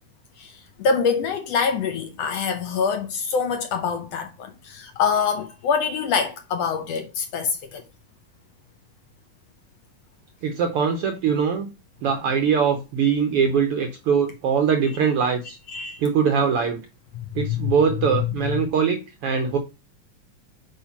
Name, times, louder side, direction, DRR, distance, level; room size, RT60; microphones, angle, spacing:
voice 1, 0.4-7.8 15.7-16.0 17.4-17.7 18.1-18.3, left 6 dB, 70° left, 1.8 m, -25 dB
voice 2, 10.4-11.7 12.0-15.6 16.0-16.8 17.4-19.6, right 6 dB, 70° right, 1.4 m, -22 dB
8.5 x 3.2 x 5.9 m
omnidirectional pair, 3.5 m